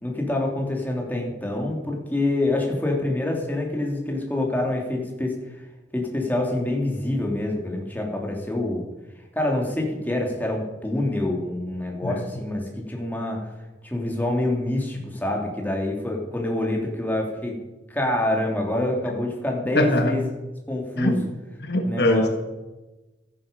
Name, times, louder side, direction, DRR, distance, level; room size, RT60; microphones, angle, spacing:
voice 1, 0.0-5.4 5.9-8.9 9.3-13.5 13.8-17.6 17.9-20.3 20.7-21.3 21.8-22.3, left 1 dB, 10° left, 0 dB, 3.0 m, -26 dB
voice 2, 19.7-20.1 21.0-21.2 21.6-22.3, left 1 dB, 60° left, 5 dB, 1.4 m, -22 dB
13.0 x 11.0 x 6.9 m, 1.1 s
head